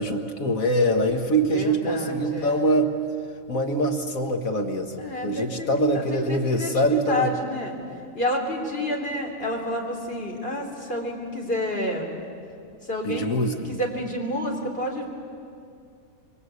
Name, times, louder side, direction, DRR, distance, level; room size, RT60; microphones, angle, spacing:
voice 1, 0.0-2.9 3.5-7.3 13.0-13.7, right 1 dB, 75° left, 5 dB, 2.0 m, -24 dB
voice 2, 1.5-2.7 5.0-7.7 8.1-12.1 12.8-13.3 13.6-15.0, left 1 dB, 45° left, 0 dB, 3.8 m, -29 dB
27.0 x 23.5 x 8.4 m, 2.4 s
omnidirectional pair, 1.4 m